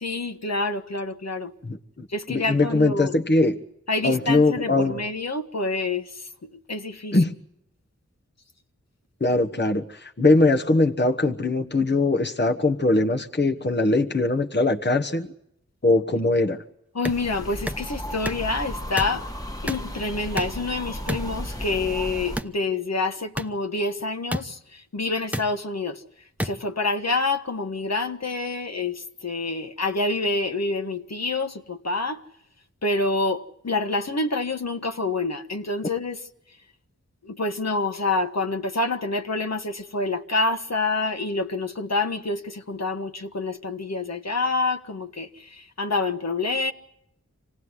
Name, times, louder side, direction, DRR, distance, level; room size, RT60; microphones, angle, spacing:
voice 1, 0.0-1.5 2.1-3.1 3.9-7.2 16.9-19.3 19.6-26.0 26.4-32.2 32.8-36.2 37.2-46.7, left 3 dB, 60° left, 1.5 m, -27 dB
voice 2, 1.6-3.6 4.0-5.0 7.1-7.3 9.2-15.3 15.8-16.6, left 2 dB, 35° left, 1.2 m, -21 dB
sound 1, 17.0-22.4, equal, 10° left, 1.6 m, -34 dB
sound 2, 17.1-17.2 17.7-17.8 18.2-18.4 19.0-19.2 19.7-19.9 20.4-20.6 21.1-21.3 22.4-22.6 23.4-23.5 24.3-24.4 25.3-25.5 26.4-26.5, equal, 5° right, 1.0 m, -29 dB
26.5 x 18.0 x 9.8 m
wide cardioid pair, 50°, 30 cm